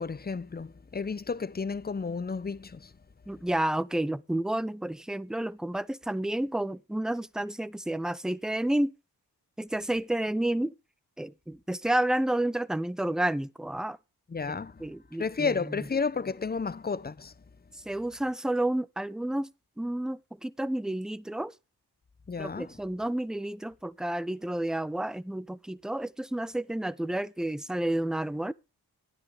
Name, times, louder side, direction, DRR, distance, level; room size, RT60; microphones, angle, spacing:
voice 1, 0.0-2.9 14.3-14.9 15.2-17.3 22.3-22.7, left 5 dB, 25° left, 0.7 m, -32 dB
voice 2, 3.3-8.9 9.6-10.7 11.2-14.0 14.8-15.5 17.9-19.5 19.8-21.5 22.4-28.5, right 1 dB, ahead, 0.4 m, -30 dB
11.5 x 10.0 x 3.4 m
cardioid pair, 50°, 40 cm